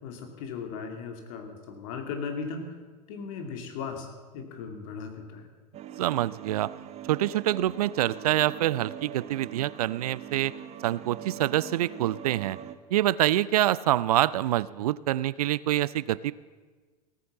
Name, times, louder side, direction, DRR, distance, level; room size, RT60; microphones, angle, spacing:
voice 1, 0.0-2.8 3.1-4.1 4.3-5.5, left 5 dB, 55° left, 5 dB, 2.6 m, -37 dB
sound 1, 5.7-12.8, right 10 dB, 30° right, 1.0 m, -42 dB
voice 2, 6.0-6.7 7.1-10.5 10.8-12.6 12.9-16.3, right 13 dB, 65° right, 20 dB, 0.5 m, -26 dB
17.0 x 9.4 x 7.1 m, 1.4 s
figure-of-eight pair, 90°, 21 cm